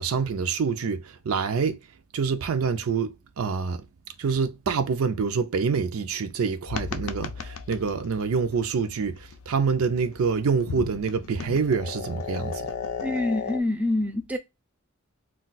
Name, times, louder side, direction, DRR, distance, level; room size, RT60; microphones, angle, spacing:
voice 1, 0.0-1.8 2.1-3.8 4.2-12.7, right 5 dB, 85° right, 0.4 m, -26 dB
sound 1, 6.7-13.6, left 6 dB, 70° left, 0.4 m, -36 dB
voice 2, 13.0-14.4, left 2 dB, 5° right, 0.4 m, -26 dB
2.3 x 2.3 x 3.9 m
head